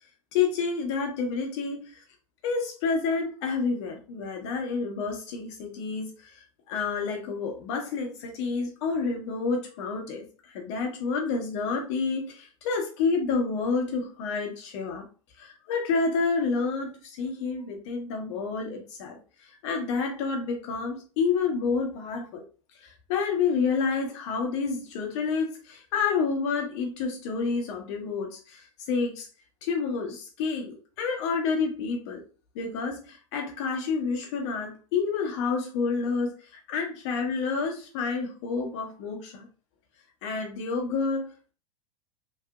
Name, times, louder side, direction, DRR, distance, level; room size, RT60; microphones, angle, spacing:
voice 1, 0.3-2.0 2.4-15.1 15.4-22.4 22.8-29.3 29.6-32.2 32.5-39.5 40.2-41.5, left 5 dB, 55° left, 3 dB, 1.1 m, -29 dB
3.2 x 2.7 x 2.4 m, 0.37 s
hypercardioid pair, 95°, 18 cm